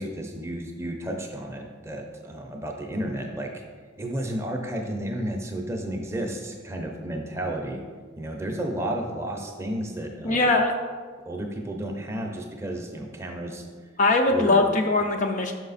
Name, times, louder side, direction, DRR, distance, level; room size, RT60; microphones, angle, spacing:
voice 1, 0.0-3.5 4.0-7.8 8.2-10.5 11.2-13.6 14.3-14.6, right 1 dB, 15° right, 1 dB, 0.6 m, -32 dB
voice 2, 10.2-10.7 14.0-15.5, left 2 dB, 40° left, 4 dB, 0.4 m, -21 dB
6.1 x 4.9 x 4.1 m, 1.5 s
head